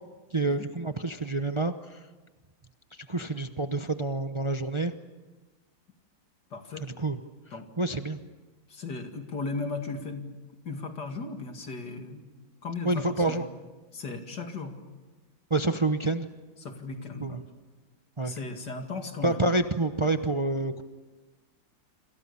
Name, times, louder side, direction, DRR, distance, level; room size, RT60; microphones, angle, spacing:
voice 1, 0.3-2.0 3.1-4.9 6.8-7.2 7.8-8.2 12.8-13.4 15.5-16.3 17.2-17.4 18.2-18.3 19.2-20.8, right 2 dB, 50° right, 8 dB, 0.3 m, -28 dB
voice 2, 6.5-6.9 7.5-7.7 8.7-10.3 10.6-12.3 12.6-13.5 13.9-14.7 16.6-17.4 18.2-19.4, left 3 dB, 60° left, 5 dB, 2.9 m, -36 dB
27.0 x 27.0 x 7.0 m, 1.2 s
omnidirectional pair, 2.1 m